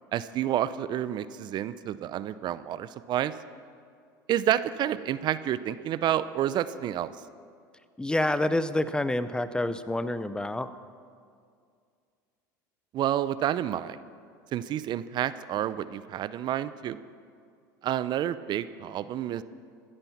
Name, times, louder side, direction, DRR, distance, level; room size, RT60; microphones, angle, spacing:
voice 1, 0.1-3.3 4.3-7.1 12.9-14.0 14.5-17.0 17.8-19.4, right 11 dB, 45° right, 15 dB, 0.5 m, -29 dB
voice 2, 8.0-10.7, left 1 dB, 10° left, 13 dB, 0.6 m, -28 dB
14.5 x 9.7 x 7.2 m, 2.2 s
hypercardioid pair, 90°, 10 cm